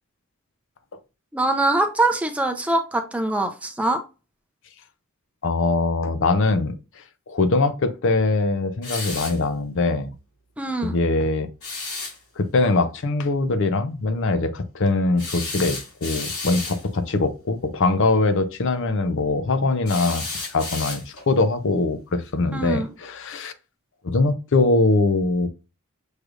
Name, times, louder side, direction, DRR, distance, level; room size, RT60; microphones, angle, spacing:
voice 1, 1.3-4.0 10.6-10.9 22.5-22.9, right 2 dB, 5° right, 0.5 m, -23 dB
voice 2, 5.4-6.7 7.3-10.1 10.8-11.5 12.4-20.2 20.5-23.5 24.0-25.5, left 3 dB, 60° left, 0.6 m, -22 dB
sound 1, 8.8-9.4 11.6-12.2 15.2-16.8 19.9-21.3, left 3 dB, 80° left, 2.1 m, -32 dB
6.4 x 3.2 x 2.4 m
head